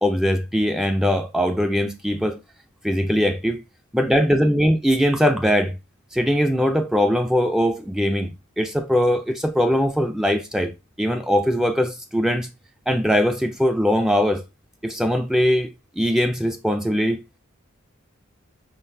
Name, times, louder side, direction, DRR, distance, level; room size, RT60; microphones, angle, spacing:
voice 1, 0.0-2.4 2.8-3.6 3.9-5.7 6.1-8.3 8.6-10.7 11.0-12.5 12.9-14.4 14.8-17.2, equal, ahead, 0.4 m, -21 dB
5.3 x 3.8 x 2.7 m
head